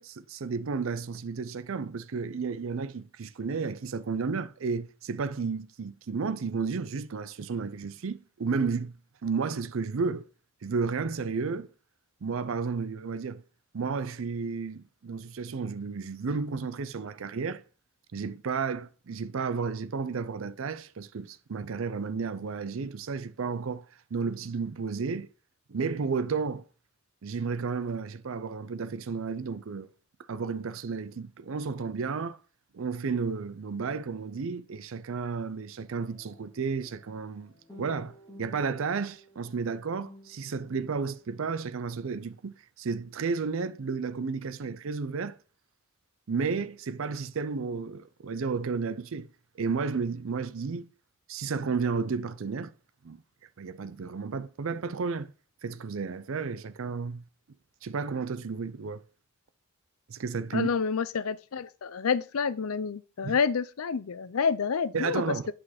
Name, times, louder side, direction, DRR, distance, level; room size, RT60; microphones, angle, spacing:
voice 1, 0.0-9.0 9.2-10.3 10.6-11.7 12.2-13.4 13.7-17.6 18.1-23.9 24.1-25.3 25.7-26.6 27.2-29.9 30.3-32.4 32.7-45.4 46.3-49.3 49.6-50.9 51.3-52.7 53.0-53.2 53.6-55.3 55.6-57.2 57.8-59.0 60.1-60.7 63.2-63.4 64.9-65.5, right 5 dB, 65° right, 0.5 m, -32 dB
sound 1, 35.8-41.6, equal, 20° left, 3.4 m, -54 dB
voice 2, 60.5-65.3, left 6 dB, 80° left, 0.5 m, -28 dB
8.4 x 5.0 x 4.3 m
head